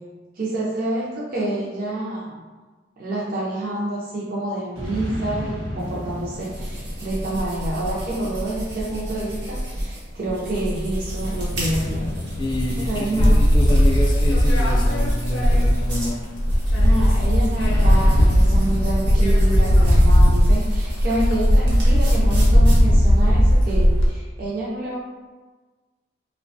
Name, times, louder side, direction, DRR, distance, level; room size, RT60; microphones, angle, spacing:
voice 1, 0.4-2.4 3.0-12.1 12.8-13.4 16.7-25.0, right 1 dB, 50° right, -6 dB, 0.4 m, -28 dB
sound 1, 4.8-8.4 11.5-15.2 17.6-21.0, left 1 dB, 90° right, 0.9 m, -34 dB
sound 2, 5.8-23.3, equal, 65° right, 0.9 m, -30 dB
voice 2, 12.4-16.2, left 1 dB, 25° left, -2 dB, 0.3 m, -28 dB
sound 3, 13.2-16.1 16.4-24.1, equal, 80° left, 0.5 m, -17 dB
2.9 x 2.2 x 2.6 m, 1.3 s
head